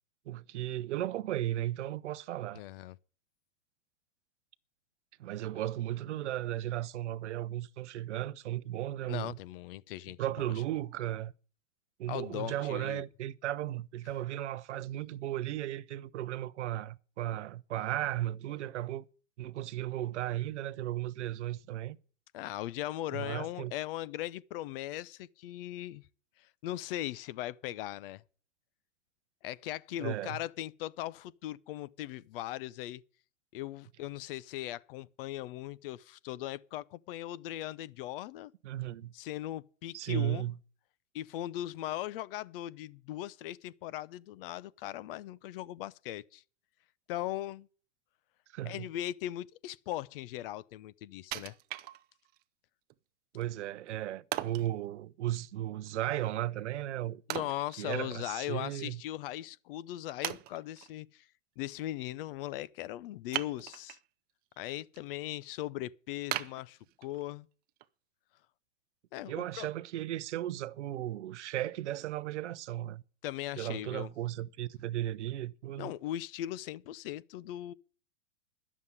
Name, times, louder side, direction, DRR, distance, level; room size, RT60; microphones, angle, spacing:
voice 1, 0.3-2.6 5.2-9.4 10.2-11.3 12.0-19.1 19.4-22.0 23.1-23.7 30.0-30.4 38.6-39.1 39.9-40.5 48.5-48.8 53.3-57.2 57.8-59.0 69.3-73.0 73.6-75.9, right 13 dB, 70° right, 0.7 m, -35 dB
voice 2, 2.5-3.0 9.1-10.2 12.1-13.0 22.3-26.0 26.4-28.2 29.4-33.0 33.5-38.5 39.1-40.5 41.1-46.4 47.1-47.7 48.7-51.5 57.3-61.3 61.6-64.0 64.6-67.5 69.1-69.7 73.2-74.1 75.8-77.7, left 14 dB, 50° left, 0.6 m, -39 dB
Wood, 51.3-52.4 52.9-53.0 54.3-54.7 57.3-58.4 58.7-58.8 59.5-59.6 60.2-60.9 63.3-64.1 64.5-65.0 65.4-65.5 66.3-67.3 67.8-67.9, right 16 dB, 25° right, 0.5 m, -39 dB
11.0 x 7.3 x 9.6 m
hypercardioid pair, 115°, 37 cm